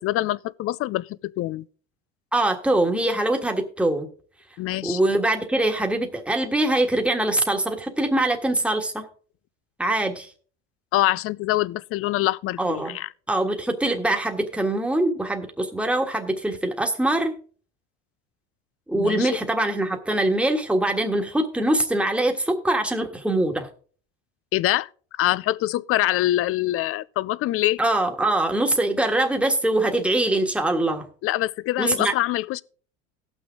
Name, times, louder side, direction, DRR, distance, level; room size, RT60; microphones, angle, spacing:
voice 1, 0.0-1.6 4.6-5.0 10.9-13.1 18.9-19.4 24.5-24.9 25.2-27.8 31.2-32.6, left 16 dB, 45° left, 0.4 m, -24 dB
voice 2, 2.3-4.1 4.8-9.0 9.8-10.3 12.6-13.0 13.3-17.4 18.9-23.7 27.8-31.1 31.8-32.1, right 1 dB, 5° right, 1.5 m, -23 dB
17.5 x 6.3 x 3.6 m
supercardioid pair, 90°, 34 cm